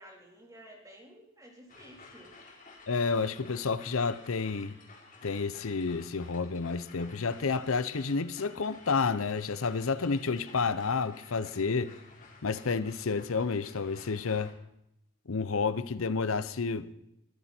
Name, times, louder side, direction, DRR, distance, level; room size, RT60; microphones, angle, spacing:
voice 1, 0.0-2.4, equal, 15° right, 3.8 m, -53 dB
sound 1, 1.7-14.5, left 3 dB, 40° left, 3.4 m, -54 dB
voice 2, 2.9-4.7 5.2-11.9 12.4-14.5 15.3-16.9, left 4 dB, 80° left, 0.7 m, -30 dB
22.0 x 13.5 x 4.4 m
head